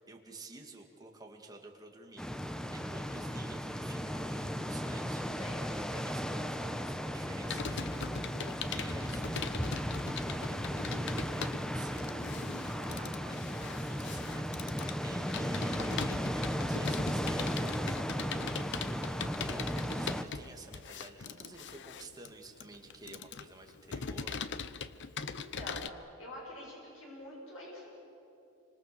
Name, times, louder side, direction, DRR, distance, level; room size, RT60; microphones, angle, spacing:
voice 1, 0.0-5.3 5.8-24.5, right 2 dB, 20° right, 2 dB, 2.3 m, -51 dB
sound 1, 2.2-20.2, equal, 5° left, 0.8 m, -36 dB
voice 2, 5.3-5.8 25.2-27.9, left 1 dB, 70° left, -3 dB, 7.3 m, -47 dB
Computer keyboard, 7.4-25.9, left 6 dB, 55° left, 0.8 m, -41 dB
28.5 x 25.5 x 6.9 m, 2.9 s
head